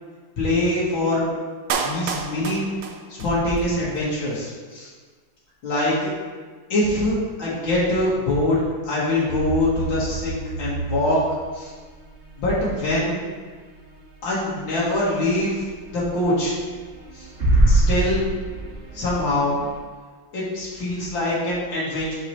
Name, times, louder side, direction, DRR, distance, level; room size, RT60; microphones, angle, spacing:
voice 1, 0.4-1.3 1.8-2.7 3.1-4.9 5.6-6.1 6.7-11.2 11.5-11.7 12.4-13.2 14.2-15.7 15.9-16.6 17.1-17.3 17.7-18.2 18.9-19.6 20.3-22.1, left 1 dB, 90° left, -7 dB, 2.3 m, -23 dB
Clapping, 1.7-3.7 3.9-4.0, right 5 dB, 80° right, 1.3 m, -29 dB
sound 1, 9.3-19.8, right 2 dB, 40° right, 1.6 m, -27 dB
7.6 x 5.8 x 3.1 m, 1.5 s
omnidirectional pair, 2.0 m